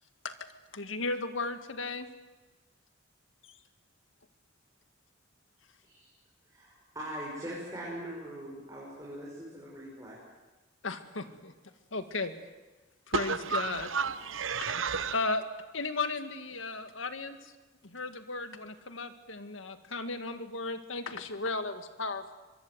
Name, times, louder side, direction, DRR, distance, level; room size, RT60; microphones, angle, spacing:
voice 1, 0.7-2.1 10.8-11.5 11.9-12.3 13.1-13.9 15.1-15.4 15.7-17.4 17.8-22.3, left 3 dB, 80° left, 9 dB, 1.9 m, -35 dB
voice 2, 6.5-10.2, equal, 15° right, -6 dB, 6.3 m, -41 dB
voice 3, 13.1-15.2, right 5 dB, 85° right, 13 dB, 1.1 m, -32 dB
24.5 x 23.0 x 8.0 m, 1.2 s
head